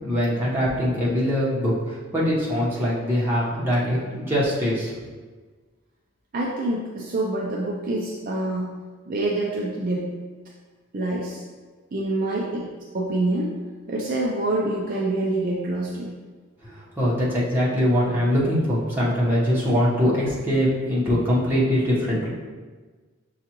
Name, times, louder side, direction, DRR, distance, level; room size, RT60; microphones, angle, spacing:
voice 1, 0.0-5.1 16.6-22.3, equal, 10° right, -8 dB, 1.0 m, -22 dB
voice 2, 6.3-8.7 9.1-10.1 10.9-11.4 11.9-12.7 12.9-13.5 13.9-16.1, right 2 dB, 45° right, -3 dB, 0.4 m, -26 dB
6.6 x 2.4 x 2.9 m, 1.4 s
head